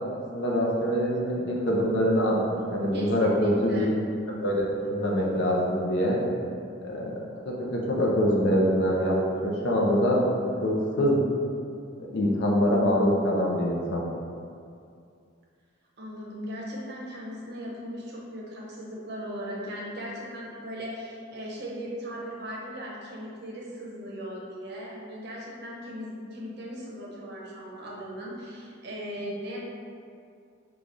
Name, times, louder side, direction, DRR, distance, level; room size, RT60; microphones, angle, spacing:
voice 1, 0.3-3.9 4.4-4.6 4.9-6.2 6.8-7.2 7.5-9.2 9.4-10.2 10.6-11.2 12.1-14.0, equal, 55° left, -3 dB, 0.6 m, -24 dB
voice 2, 2.9-3.9 16.0-29.6, equal, 55° right, -4 dB, 0.7 m, -38 dB
3.3 x 2.3 x 3.8 m, 2.4 s
head